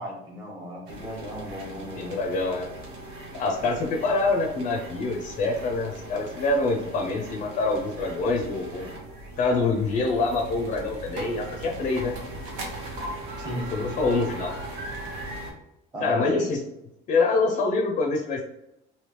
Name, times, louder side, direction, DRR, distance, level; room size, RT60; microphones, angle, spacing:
voice 1, 0.0-2.2 13.4-13.7 15.9-16.5, equal, 20° right, -4 dB, 1.2 m, -36 dB
sound 1, 0.9-15.5, right 1 dB, 75° right, 0.9 m, -39 dB
voice 2, 2.0-2.7 3.3-8.9 9.4-12.1 13.7-14.5 16.0-16.6 17.1-18.4, left 3 dB, 40° left, 1 dB, 0.5 m, -25 dB
3.3 x 2.8 x 2.9 m, 0.85 s
cardioid pair, 165°, 20 cm